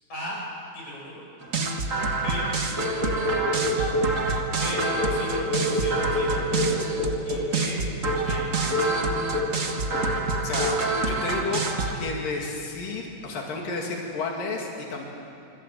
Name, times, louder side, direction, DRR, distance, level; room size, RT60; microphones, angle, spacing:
voice 1, 0.7-1.2 2.1-3.2 4.5-4.8 5.1-6.4 7.2-7.9 8.3-8.5, left 1 dB, 55° left, -3 dB, 7.3 m, -37 dB
sound 1, 1.4-11.9, right 3 dB, 50° right, 0.9 m, -27 dB
sound 2, 2.8-4.2 4.7-7.6 8.0-8.3 8.7-9.0 9.3-9.6 9.9-10.2 10.6-10.8, left 1 dB, 25° right, 4.3 m, -27 dB
voice 2, 10.4-11.6 11.9-15.1, left 3 dB, 80° left, 0 dB, 4.0 m, -31 dB
25.5 x 25.5 x 7.6 m, 2.6 s
omnidirectional pair, 3.9 m